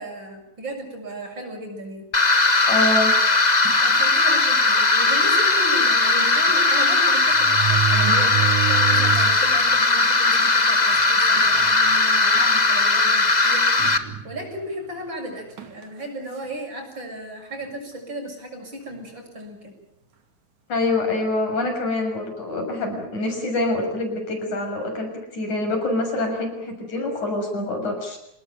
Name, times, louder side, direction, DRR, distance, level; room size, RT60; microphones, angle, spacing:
voice 1, 0.0-2.1 3.8-13.7 14.2-19.7, right 1 dB, 40° right, 3 dB, 7.5 m, -35 dB
sound 1, 2.1-14.0, left 3 dB, 25° left, 1.0 m, -18 dB
voice 2, 2.7-3.1 20.7-28.2, left 2 dB, 85° left, 3 dB, 8.2 m, -25 dB
sound 2, 3.7-3.9 4.7-4.8 5.1-5.2 6.5-6.6 7.3-9.5 10.0-10.1 10.9-11.0 11.4-11.7 12.3-12.5 13.8-14.6 15.6-15.8, right 10 dB, 85° right, 4.1 m, -27 dB
27.5 x 19.5 x 9.2 m, 0.76 s
omnidirectional pair, 3.3 m